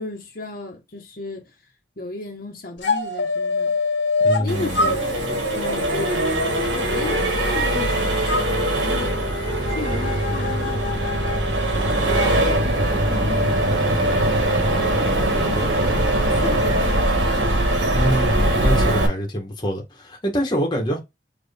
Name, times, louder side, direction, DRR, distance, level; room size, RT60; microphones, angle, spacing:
voice 1, 0.0-1.5 2.0-3.8 4.4-9.3 9.7-11.4 11.9-17.4, left 2 dB, 50° left, 1.2 m, -35 dB
sound 1, 2.8-4.5 4.7-7.9 8.2-12.3, left 3 dB, 90° left, 1.7 m, -27 dB
voice 2, 4.2-5.0 17.9-21.0, equal, 25° left, 1.3 m, -25 dB
Accelerating revving vroom, 4.5-19.1, right 1 dB, 90° right, 1.4 m, -22 dB
sound 2, 11.7-16.9, right 1 dB, 45° right, 1.4 m, -30 dB
4.5 x 3.1 x 3.4 m
head